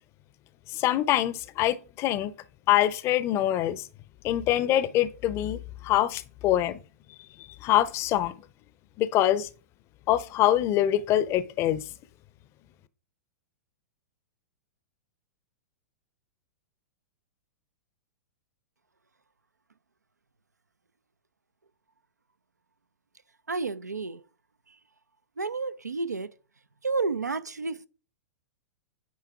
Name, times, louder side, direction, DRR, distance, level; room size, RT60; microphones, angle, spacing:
voice 1, 0.7-2.3 2.7-3.8 4.2-6.8 7.6-8.3 9.0-9.5 10.1-11.8, left 13 dB, 30° left, 0.6 m, -24 dB
voice 2, 23.5-24.2 25.4-26.3 26.8-27.9, right 4 dB, 85° right, 0.4 m, -30 dB
9.4 x 4.6 x 3.5 m
figure-of-eight pair, 100°, 9 cm